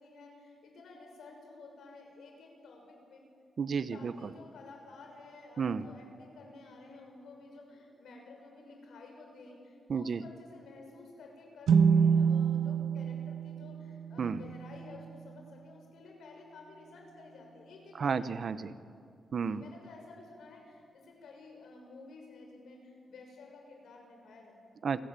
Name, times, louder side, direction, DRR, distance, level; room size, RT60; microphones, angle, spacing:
voice 1, 0.0-3.3 3.9-18.2 19.4-24.8, left 3 dB, 75° left, 1 dB, 6.5 m, -52 dB
voice 2, 3.6-4.3 5.6-5.9 9.9-10.2 14.2-14.4 17.9-18.7 19.3-19.6 24.8-25.0, right 6 dB, 45° right, 14 dB, 0.8 m, -32 dB
sound 1, 11.7-15.2, right 6 dB, 90° right, 1.3 m, -27 dB
29.5 x 19.5 x 8.9 m, 2.4 s
wide cardioid pair, 170°, 0 cm